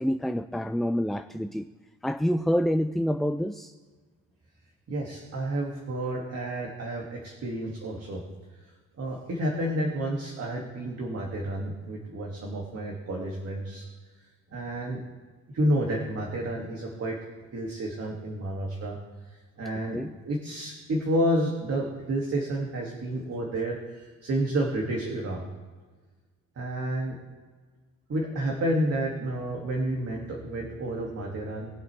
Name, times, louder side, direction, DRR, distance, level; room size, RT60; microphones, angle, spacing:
voice 1, 0.0-1.7 2.0-3.7 19.9-20.1, equal, ahead, 9 dB, 0.4 m, -27 dB
voice 2, 4.9-8.2 8.6-8.7 9.0-13.8 14.5-15.0 15.5-17.2 17.5-19.0 19.3-20.0 20.2-25.4 26.6-27.2 28.1-31.7, right 1 dB, 55° right, -1 dB, 2.4 m, -30 dB
20.0 x 8.0 x 3.4 m, 1.4 s
cardioid pair, 90°, 30 cm